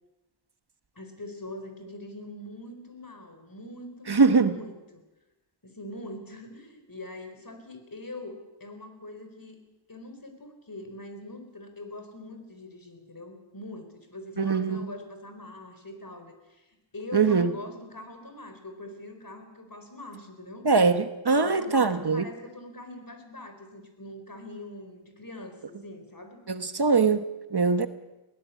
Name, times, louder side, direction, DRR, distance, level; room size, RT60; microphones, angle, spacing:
voice 1, 0.9-4.8 5.6-9.6 9.9-20.7 21.3-25.6 25.8-26.4, left 1 dB, 45° left, 6 dB, 4.3 m, -42 dB
voice 2, 4.1-4.5 14.4-14.8 17.1-17.5 20.6-22.2 26.5-27.9, right 4 dB, 50° right, 11 dB, 1.1 m, -22 dB
21.0 x 17.0 x 8.4 m, 1.1 s
wide cardioid pair, 55°, 48 cm